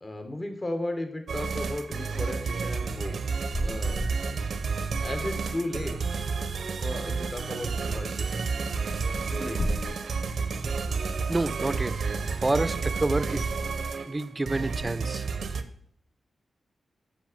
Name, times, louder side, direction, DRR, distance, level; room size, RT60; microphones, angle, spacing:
voice 1, 0.0-3.2 3.6-4.0 5.0-6.0 6.8-8.5 9.1-9.6, left 1 dB, 35° left, 6 dB, 1.2 m, -35 dB
sound 1, 1.3-15.6, right 4 dB, 75° right, 0.5 m, -31 dB
sound 2, 3.4-4.7 5.0-5.1 5.2-5.3 5.5-6.7 7.6-7.7 8.0-8.1 8.8-10.2 11.0-13.3 13.6-14.0 14.3-15.5, equal, 70° left, 1.5 m, -37 dB
voice 2, 11.3-12.2 12.4-13.5 14.1-15.3, right 2 dB, 25° right, 14 dB, 0.4 m, -28 dB
6.3 x 5.1 x 5.2 m, 0.66 s
cardioid pair, 65°, 0 cm